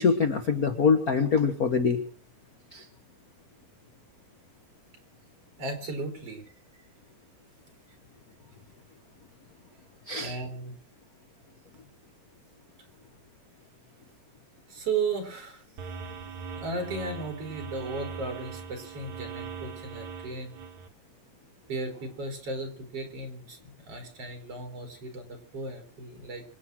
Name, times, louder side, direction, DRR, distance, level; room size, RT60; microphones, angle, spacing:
voice 1, 0.0-2.0 2.7-2.8 10.1-10.3, left 5 dB, 70° left, 7 dB, 0.8 m, -24 dB
voice 2, 5.6-6.4 10.2-10.8 14.7-16.0 16.6-20.6 21.7-26.4, right 3 dB, 45° right, 3 dB, 4.9 m, -35 dB
sound 1, 15.8-20.9, right 6 dB, 60° right, 3.0 m, -40 dB
26.0 x 9.1 x 6.2 m, 0.42 s
omnidirectional pair, 3.8 m